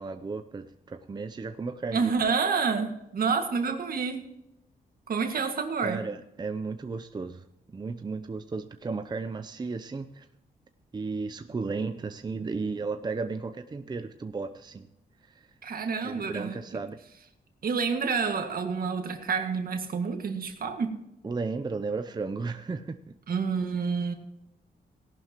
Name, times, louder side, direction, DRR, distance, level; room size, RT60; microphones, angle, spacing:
voice 1, 0.0-2.1 5.8-10.3 10.9-14.9 15.3-15.5 16.0-17.0 21.2-23.1, right 4 dB, 25° right, 9 dB, 0.6 m, -34 dB
voice 2, 1.9-4.2 5.1-6.0 15.6-16.6 17.6-21.0 23.3-24.1, right 5 dB, 60° right, 6 dB, 1.9 m, -28 dB
17.5 x 11.5 x 3.0 m, 0.85 s
cardioid pair, 110°, 17 cm